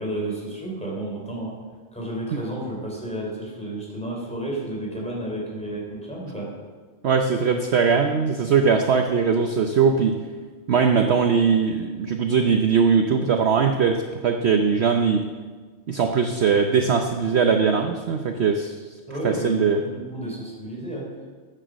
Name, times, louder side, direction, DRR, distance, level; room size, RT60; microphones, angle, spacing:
voice 1, 0.0-1.6 1.9-6.6 19.1-21.1, right 1 dB, 5° left, -3 dB, 3.6 m, -32 dB
voice 2, 7.0-10.2 10.7-15.2 15.9-18.8 19.2-19.8, right 5 dB, 55° right, 5 dB, 0.9 m, -20 dB
13.5 x 9.0 x 6.3 m, 1.5 s
omnidirectional pair, 1.5 m